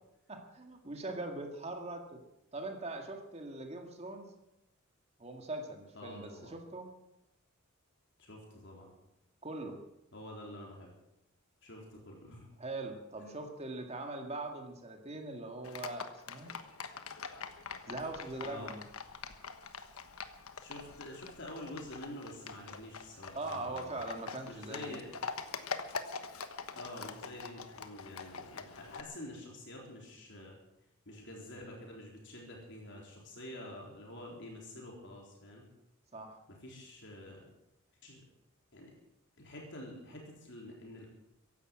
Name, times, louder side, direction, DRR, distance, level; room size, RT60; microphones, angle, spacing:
voice 1, 0.3-2.2 2.5-4.3 5.2-6.9 9.4-9.8 12.6-16.5 17.9-18.8 23.3-25.0 36.1-36.4, right 2 dB, 30° right, 4 dB, 2.0 m, -41 dB
voice 2, 5.9-6.6 8.2-8.9 10.1-10.9 11.6-12.5 13.2-13.4 18.4-18.7 20.6-24.0 24.4-25.1 26.7-30.6 31.1-35.7 36.5-37.4 38.0-38.2 38.7-38.9 39.4-41.1, left 1 dB, 55° left, -1 dB, 3.8 m, -48 dB
Livestock farm animals working animals, 15.6-29.0, left 5 dB, 80° left, 1.3 m, -44 dB
15.5 x 11.0 x 7.7 m, 0.88 s
head